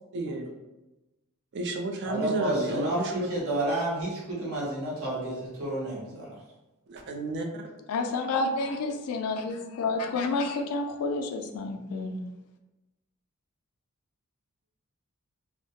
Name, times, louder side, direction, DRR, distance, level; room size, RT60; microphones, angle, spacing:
voice 1, 0.1-0.5 1.5-3.3 6.9-7.6, right 2 dB, 50° right, 2 dB, 0.3 m, -31 dB
voice 2, 2.1-6.3, right 1 dB, 70° right, -5 dB, 0.8 m, -30 dB
voice 3, 7.9-12.2, left 3 dB, 75° left, 5 dB, 0.3 m, -29 dB
2.2 x 2.0 x 2.7 m, 1.0 s
head